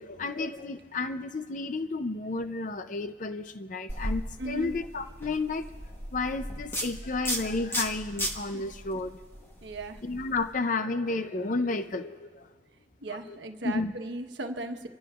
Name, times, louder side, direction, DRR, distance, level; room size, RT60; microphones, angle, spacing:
voice 1, 0.0-5.7 6.1-9.2 10.0-12.4 13.6-13.9, left 3 dB, 40° left, 9 dB, 0.5 m, -32 dB
sound 1, 3.9-10.5, equal, 10° left, 1.1 m, -36 dB
voice 2, 4.4-4.7 8.5-8.6 9.6-10.0 13.0-14.9, right 2 dB, 70° right, 5 dB, 1.2 m, -37 dB
27.0 x 16.0 x 2.4 m, 1.5 s
head